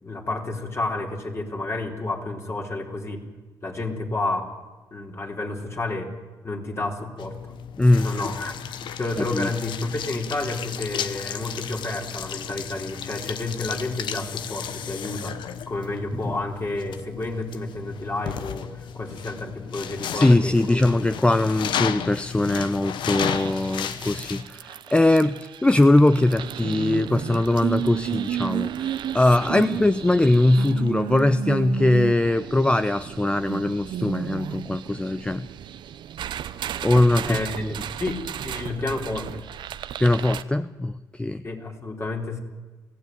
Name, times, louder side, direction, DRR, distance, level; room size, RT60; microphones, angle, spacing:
voice 1, 0.0-3.2 3.6-4.5 4.9-6.1 6.4-7.4 8.0-8.6 9.0-20.9 29.5-29.7 37.2-39.4 41.4-42.4, left 2 dB, 35° left, 2 dB, 4.2 m, -30 dB
sound 1, 7.2-24.4, left 8 dB, 75° left, 1.2 m, -33 dB
voice 2, 9.2-9.5 16.3-16.4 20.1-35.5 36.8-37.7 40.0-41.4, left 2 dB, 15° left, 13 dB, 0.7 m, -21 dB
sound 2, 23.1-40.4, right 10 dB, 70° right, 0.9 m, -33 dB
23.0 x 16.0 x 9.6 m, 1.3 s
cardioid pair, 75°, 8 cm